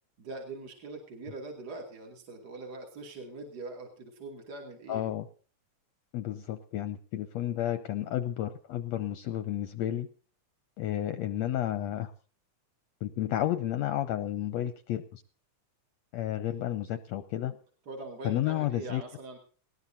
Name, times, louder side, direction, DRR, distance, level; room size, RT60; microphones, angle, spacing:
voice 1, 0.2-5.0 17.5-17.6 17.9-19.4, right 3 dB, 35° right, 1 dB, 2.7 m, -42 dB
voice 2, 4.9-5.3 6.1-10.1 10.8-12.1 13.0-15.2 16.1-17.5 18.2-19.0, left 12 dB, 70° left, 11 dB, 1.8 m, -31 dB
19.5 x 18.5 x 2.7 m, 0.42 s
omnidirectional pair, 3.5 m